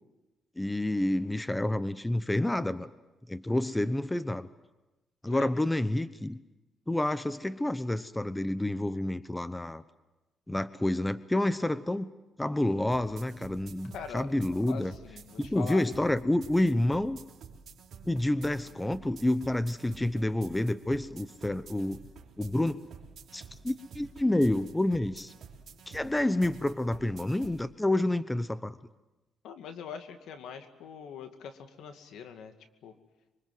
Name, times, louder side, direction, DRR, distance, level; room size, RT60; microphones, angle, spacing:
voice 1, 0.6-2.9 3.3-4.5 5.2-6.4 6.9-9.8 10.5-12.1 12.4-14.9 15.4-17.2 18.1-22.0 22.4-22.8 23.3-25.3 25.9-28.8, left 1 dB, 10° left, 14 dB, 0.9 m, -29 dB
sound 1, 12.9-27.6, right 5 dB, 65° right, 3.7 m, -50 dB
voice 2, 13.9-14.3 14.7-15.8 29.4-32.5 32.8-32.9, left 7 dB, 80° left, 7 dB, 2.3 m, -42 dB
26.0 x 24.0 x 7.8 m, 1.0 s
cardioid pair, 90°, 0 cm